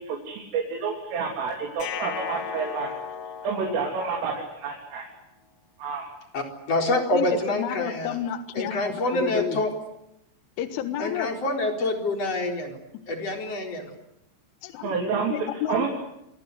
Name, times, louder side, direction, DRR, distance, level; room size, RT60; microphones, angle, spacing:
voice 1, 0.0-2.9 3.4-5.1 5.8-6.1 14.8-15.3 15.7-15.9, right 5 dB, 85° right, 0 dB, 6.0 m, -29 dB
sound 1, 1.8-4.9, left 7 dB, 65° left, 1.7 m, -36 dB
voice 2, 6.3-8.2 8.5-9.7 11.0-12.8 13.1-13.9, left 2 dB, 35° left, 4 dB, 4.8 m, -26 dB
voice 3, 6.9-9.6 10.6-11.3 14.6-14.9 15.3-15.9, left 11 dB, 80° left, 9 dB, 3.9 m, -31 dB
27.5 x 24.5 x 8.1 m, 0.82 s
omnidirectional pair, 5.6 m